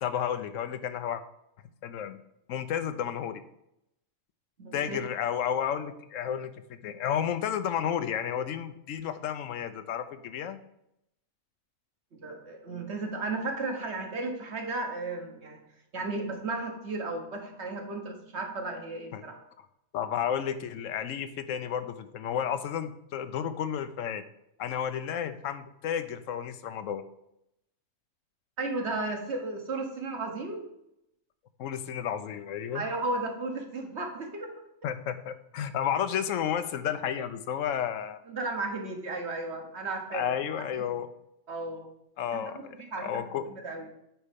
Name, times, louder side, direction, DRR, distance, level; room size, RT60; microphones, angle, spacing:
voice 1, 0.0-1.2 1.8-2.2 2.5-3.4 4.7-6.5 6.8-10.6 19.1-19.2 19.9-24.2 24.6-27.0 31.6-32.8 34.8-38.2 40.1-41.1 42.2-42.8 43.0-43.5, left 9 dB, 80° left, 10 dB, 1.0 m, -32 dB
voice 2, 4.6-5.0 12.2-15.6 15.9-19.4 28.6-30.7 32.7-34.5 38.3-40.4 41.5-41.9 42.3-43.2 43.5-43.9, right 2 dB, 55° right, 3 dB, 1.4 m, -34 dB
9.1 x 4.2 x 5.1 m, 0.81 s
omnidirectional pair, 1.4 m